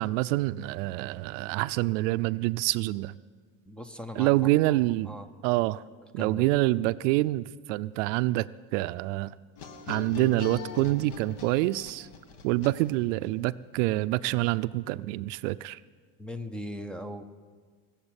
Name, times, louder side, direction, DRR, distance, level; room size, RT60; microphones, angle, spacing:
voice 1, 0.0-3.1 4.1-5.1 5.4-5.8 6.1-9.4 9.9-12.1 12.4-15.8, right 18 dB, 75° right, 15 dB, 0.5 m, -26 dB
voice 2, 3.7-4.7 5.1-5.3 6.2-6.4 16.2-17.2, equal, 5° left, 10 dB, 0.6 m, -39 dB
sound 1, 9.6-13.3, left 5 dB, 55° left, 1.7 m, -40 dB
19.5 x 7.3 x 8.9 m, 1.5 s
cardioid pair, 155°, 38 cm